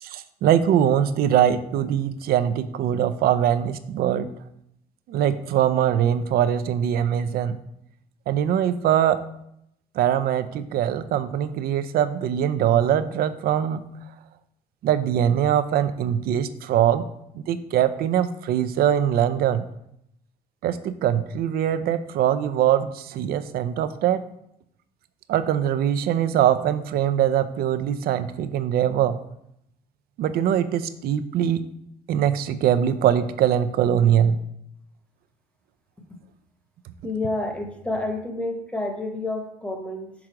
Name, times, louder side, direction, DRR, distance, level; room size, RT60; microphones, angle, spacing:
voice 1, 0.0-4.3 5.1-7.6 8.3-9.2 9.9-13.9 14.8-17.0 17.3-19.7 20.6-24.2 25.3-29.2 30.2-31.6 32.1-34.4, right 10 dB, 65° right, 12 dB, 0.5 m, -22 dB
voice 2, 37.0-40.1, left 2 dB, 5° left, 3 dB, 1.0 m, -29 dB
6.1 x 3.8 x 4.6 m, 0.76 s
cardioid pair, 110°, 17 cm